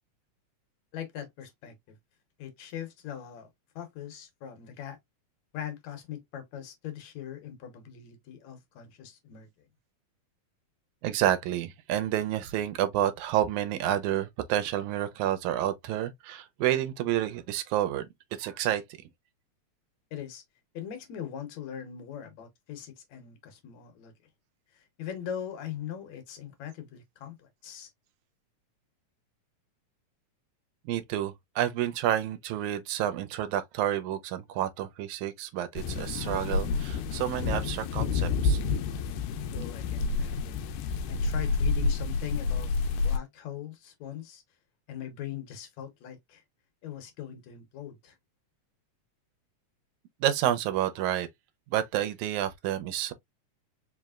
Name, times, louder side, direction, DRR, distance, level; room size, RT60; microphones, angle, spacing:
voice 1, 0.9-2.0 2.4-3.5 3.8-5.0 5.5-9.5 20.1-20.4 20.7-24.1 24.7-27.9 39.5-42.7 43.0-44.4 44.9-46.4 46.8-48.1, left 9 dB, 70° left, 2.0 m, -41 dB
voice 2, 11.0-18.1 18.4-18.8 30.9-38.6 50.2-51.3 51.7-53.1, right 12 dB, 85° right, 2.0 m, -29 dB
sound 1, 35.8-43.2, left 4 dB, 90° left, 2.0 m, -29 dB
4.8 x 3.0 x 2.3 m
omnidirectional pair, 3.4 m